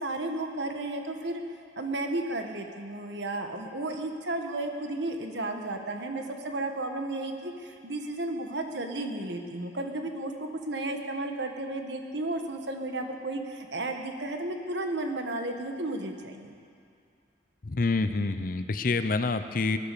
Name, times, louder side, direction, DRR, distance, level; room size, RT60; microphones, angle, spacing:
voice 1, 0.0-1.4 1.8-16.6, right 2 dB, 75° right, 4 dB, 1.4 m, -33 dB
voice 2, 17.6-19.8, left 3 dB, 50° left, 10 dB, 0.6 m, -27 dB
18.0 x 11.0 x 6.8 m, 2.3 s
head